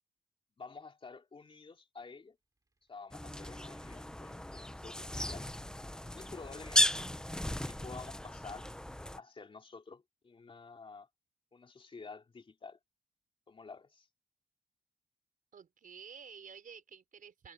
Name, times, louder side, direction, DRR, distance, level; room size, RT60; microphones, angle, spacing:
voice 1, 0.6-2.4 2.9-5.5 6.1-7.1 7.5-8.7 9.1-11.1 11.5-12.8 13.5-14.1, left 4 dB, 30° left, 3.5 m, -50 dB
Slam, 2.6-3.6 5.7-6.0 6.4-7.6, right 3 dB, 20° right, 3.5 m, -63 dB
sound 1, 3.1-9.2, left 1 dB, 5° left, 0.5 m, -35 dB
voice 2, 15.5-17.5, right 6 dB, 55° right, 4.7 m, -51 dB
wide cardioid pair, 170°, 17 cm